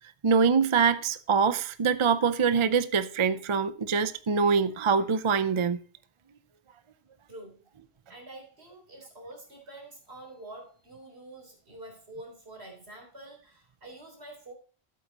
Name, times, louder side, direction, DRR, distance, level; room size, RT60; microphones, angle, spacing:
voice 1, 0.2-5.8, right 5 dB, 35° right, 0.5 m, -24 dB
voice 2, 7.3-7.7 8.1-14.5, right 1 dB, 80° right, 3.9 m, -47 dB
12.0 x 8.5 x 2.9 m
omnidirectional pair, 1.1 m